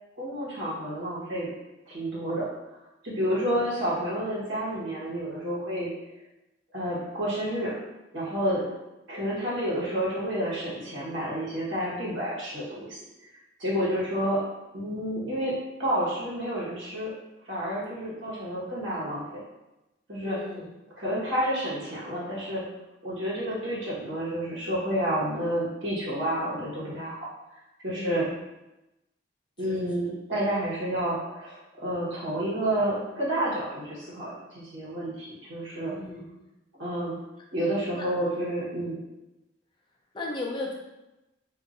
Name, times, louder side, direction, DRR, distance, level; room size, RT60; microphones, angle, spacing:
voice 1, 0.2-1.5 1.9-2.5 3.0-5.9 6.7-7.8 8.1-8.7 9.1-13.0 13.6-14.4 14.7-17.1 17.4-19.4 20.1-20.4 21.0-22.7 23.0-27.3 27.8-28.3 29.6-35.9 36.8-37.1 37.5-39.0, right 1 dB, 90° right, -7 dB, 1.2 m, -30 dB
voice 2, 20.2-20.7 27.9-28.2 29.6-29.9 35.9-36.3 37.9-38.1 40.1-40.7, left 2 dB, 25° left, -1 dB, 0.5 m, -36 dB
2.6 x 2.5 x 3.9 m, 0.99 s
head